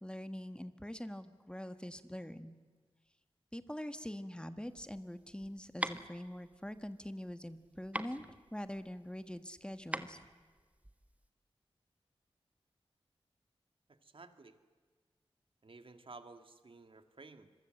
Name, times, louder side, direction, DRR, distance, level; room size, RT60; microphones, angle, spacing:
voice 1, 0.0-2.6 3.5-8.2 8.5-10.2, equal, 10° left, 10 dB, 1.4 m, -44 dB
sound 1, 4.6-11.3, right 1 dB, 15° right, 1.4 m, -43 dB
voice 2, 13.9-14.6 15.6-17.5, right 3 dB, 60° right, 8 dB, 1.9 m, -54 dB
26.0 x 22.5 x 7.8 m, 1.4 s
cardioid pair, 50°, 10 cm